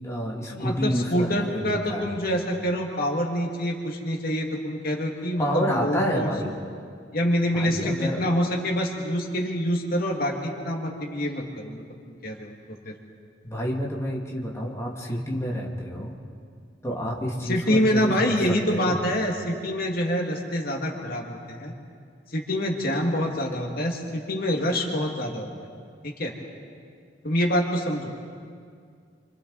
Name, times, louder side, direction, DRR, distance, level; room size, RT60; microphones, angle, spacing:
voice 1, 0.0-2.1 5.4-6.5 7.5-8.3 13.4-16.1 16.8-19.0, equal, 15° left, -3 dB, 2.4 m, -29 dB
voice 2, 0.5-6.3 7.1-12.5 12.9-13.0 17.5-21.7 22.3-25.5 26.0-26.3 27.2-28.1, equal, 55° left, 0 dB, 2.4 m, -26 dB
29.5 x 25.5 x 4.1 m, 2.2 s
head